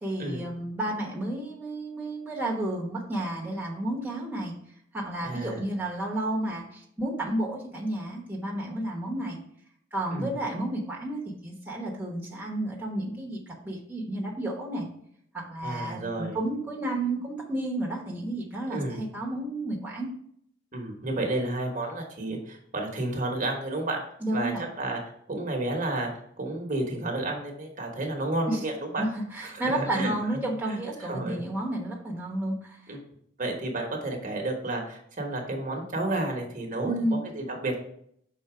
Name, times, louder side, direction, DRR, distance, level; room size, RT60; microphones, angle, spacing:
voice 1, 0.0-4.5 4.9-9.4 9.9-13.4 13.6-14.9 15.3-20.1 24.2-24.7 28.5-28.6 29.0-33.0 36.8-37.2, right 1 dB, 10° right, -2 dB, 1.1 m, -31 dB
voice 2, 5.2-5.6 10.1-10.3 15.6-16.4 18.7-19.0 20.7-24.0 24.3-29.0 29.4-30.4 30.7-31.4 32.9-33.0 33.4-37.8, right 2 dB, 40° right, 2 dB, 1.2 m, -31 dB
5.6 x 4.1 x 4.9 m, 0.69 s
head